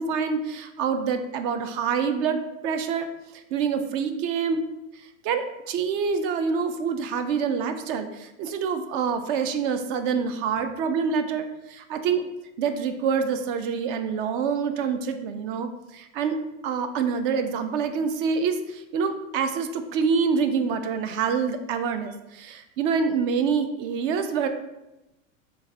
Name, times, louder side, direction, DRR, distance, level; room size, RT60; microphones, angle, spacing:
voice 1, 0.0-3.1 3.3-4.6 4.9-12.3 12.6-16.4 16.6-24.5, right 6 dB, 45° right, 8 dB, 0.4 m, -26 dB
3.8 x 2.4 x 2.8 m, 0.96 s
hypercardioid pair, 115°, 41 cm